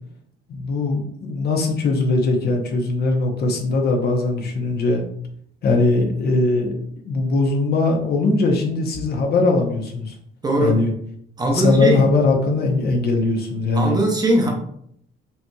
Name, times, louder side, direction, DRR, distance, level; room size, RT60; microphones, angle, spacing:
voice 1, 0.5-5.0 5.6-6.8 7.0-10.1 10.6-10.9 11.4-14.0, left 3 dB, 50° left, 3 dB, 0.7 m, -20 dB
voice 2, 10.4-10.8 11.4-12.1 13.7-14.5, right 1 dB, 20° right, 0 dB, 0.6 m, -19 dB
5.4 x 2.9 x 2.3 m, 0.68 s
cardioid pair, 160°, 21 cm